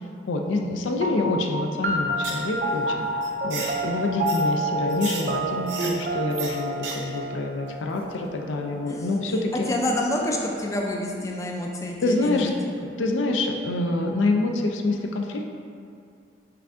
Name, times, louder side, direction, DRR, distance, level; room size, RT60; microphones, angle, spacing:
voice 1, 0.3-3.1 3.4-9.7 12.0-15.4, left 2 dB, 90° left, 3 dB, 0.4 m, -26 dB
sound 1, 1.0-9.8, right 1 dB, 50° right, 0.4 m, -29 dB
sound 2, 2.2-2.5 2.8-2.9 3.2-3.7 4.3-4.4 4.9-5.2 5.7-5.9 6.3-6.5 6.8-6.9 7.2-7.3, right 4 dB, 70° right, 0.8 m, -33 dB
voice 2, 9.5-12.5, left 1 dB, 15° left, -1 dB, 0.4 m, -28 dB
5.7 x 2.4 x 3.6 m, 2.3 s
head